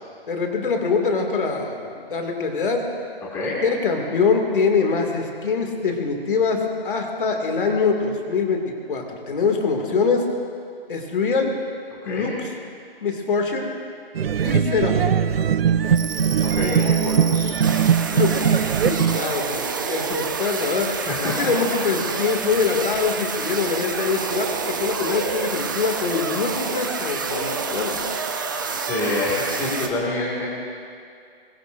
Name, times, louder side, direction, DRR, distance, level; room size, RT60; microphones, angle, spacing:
voice 1, 0.3-2.9 3.6-8.6 8.9-10.2 10.9-11.5 12.0-12.3 13.0-13.7 14.4-15.1 18.1-27.9, left 4 dB, 55° left, 2 dB, 2.4 m, -24 dB
voice 2, 12.0-12.4 16.4-17.5 21.1-21.5 28.7-30.5, left 2 dB, 10° left, -6 dB, 2.1 m, -27 dB
sound 1, 14.1-19.2, right 8 dB, 70° right, 0.7 m, -20 dB
sound 2, 15.9-29.9, right 5 dB, 20° right, 0.6 m, -28 dB
24.5 x 21.0 x 2.6 m, 2.3 s
hypercardioid pair, 165°, 30 cm